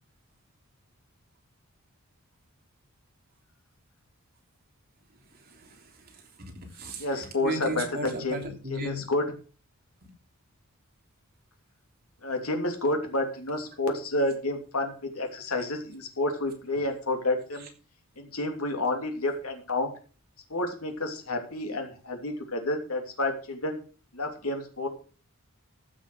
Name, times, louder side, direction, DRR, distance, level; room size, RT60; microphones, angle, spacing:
voice 1, 5.4-7.0 7.4-9.0 10.0-10.1, right 1 dB, 45° right, 1 dB, 3.3 m, -36 dB
voice 2, 7.0-9.3 12.2-17.7 18.2-19.9 20.5-23.8 24.1-24.9, left 2 dB, 75° left, 3 dB, 2.9 m, -30 dB
15.0 x 6.3 x 6.3 m, 0.38 s
head